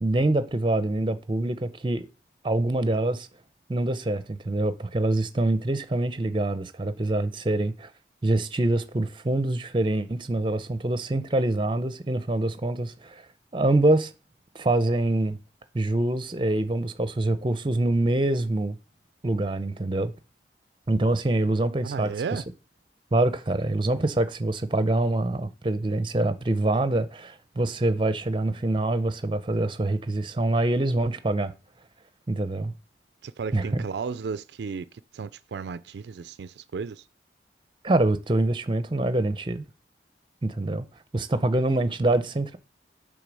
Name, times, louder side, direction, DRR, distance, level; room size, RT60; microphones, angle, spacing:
voice 1, 0.0-2.1 2.4-3.3 3.7-7.9 8.2-13.3 13.5-14.1 14.5-15.4 15.7-18.8 19.2-20.1 20.9-22.1 23.1-31.5 32.3-32.7 33.5-33.8 37.8-39.6 40.4-40.9 41.1-42.6, right 2 dB, 25° right, 0.6 m, -25 dB
voice 2, 21.8-22.4 33.2-37.0, right 5 dB, 70° right, 0.4 m, -34 dB
8.4 x 3.6 x 6.2 m
head